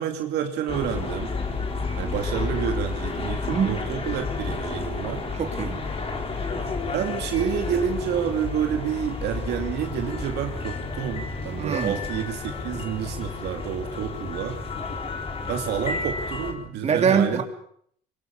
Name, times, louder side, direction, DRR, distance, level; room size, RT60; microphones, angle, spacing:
voice 1, 0.0-1.4 2.0-5.2 6.9-14.6 15.5-17.4, right 8 dB, 80° right, 4 dB, 2.5 m, -29 dB
sound 1, 0.7-16.5, left 4 dB, 35° left, 4.6 m, -31 dB
voice 2, 3.4-3.8 5.4-5.8 11.6-12.0 16.8-17.4, right 6 dB, 40° right, 4 dB, 3.6 m, -23 dB
24.0 x 22.5 x 7.0 m, 0.66 s
cardioid pair, 110°, 17 cm